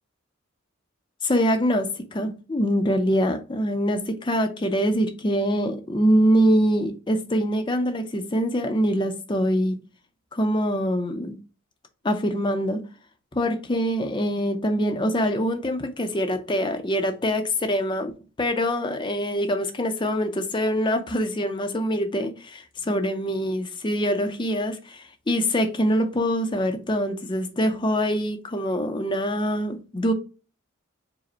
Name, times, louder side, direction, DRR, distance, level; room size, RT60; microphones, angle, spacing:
voice 1, 1.2-9.8 10.3-11.3 12.0-12.8 13.3-18.1 18.4-30.1, equal, 25° left, 0.5 m, -24 dB
4.8 x 2.1 x 4.3 m
head